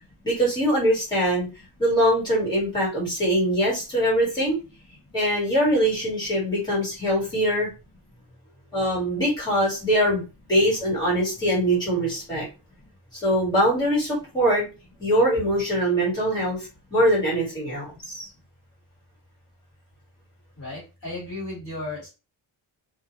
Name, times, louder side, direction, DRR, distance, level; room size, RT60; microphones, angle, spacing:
voice 1, 0.2-1.5 1.8-4.6 5.1-7.7 8.7-12.5 13.1-14.6 15.0-16.6 16.9-18.3, equal, 10° left, -5 dB, 1.3 m, -22 dB
voice 2, 20.6-22.1, left 2 dB, 30° left, -6 dB, 1.2 m, -34 dB
2.2 x 2.0 x 3.0 m, 0.29 s
wide cardioid pair, 170°, 49 cm